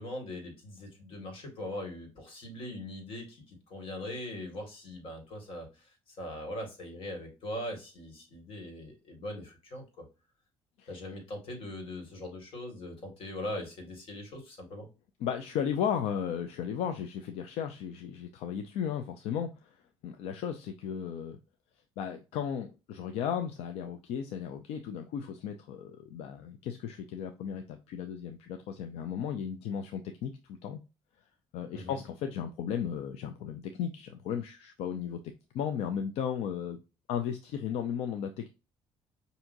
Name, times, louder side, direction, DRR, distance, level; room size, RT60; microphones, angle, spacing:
voice 1, 0.0-5.9 6.2-10.0 10.9-14.9 31.7-32.0, left 1 dB, 60° left, 4 dB, 1.9 m, -41 dB
voice 2, 15.2-21.4 22.0-30.3 30.6-30.8 31.5-35.2 35.5-36.8 37.1-38.5, left 8 dB, 85° left, 6 dB, 0.5 m, -35 dB
5.9 x 2.7 x 2.6 m, 0.29 s
cardioid pair, 125°, 10 cm